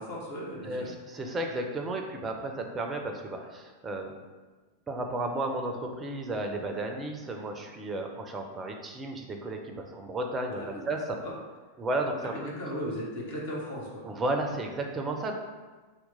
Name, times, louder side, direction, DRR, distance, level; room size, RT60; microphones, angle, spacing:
voice 1, 0.0-0.9 10.5-10.8 11.2-11.3 12.2-14.0, equal, 55° left, -4 dB, 0.9 m, -36 dB
voice 2, 0.6-4.1 4.9-11.2 11.8-12.5 14.0-15.4, right 2 dB, 20° right, 3 dB, 0.4 m, -33 dB
2.8 x 2.1 x 4.0 m, 1.3 s
figure-of-eight pair, 90°, 0 cm